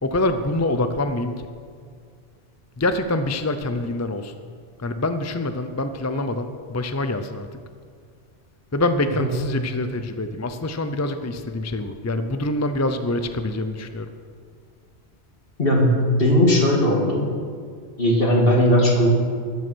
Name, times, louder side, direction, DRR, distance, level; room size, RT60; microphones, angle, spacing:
voice 1, 0.0-1.5 2.8-4.3 4.8-7.6 8.7-14.1, left 2 dB, 20° left, 8 dB, 0.4 m, -25 dB
voice 2, 15.6-17.3 18.0-19.1, equal, 55° left, -1 dB, 2.4 m, -18 dB
13.5 x 9.4 x 6.2 m, 2.1 s
omnidirectional pair, 1.1 m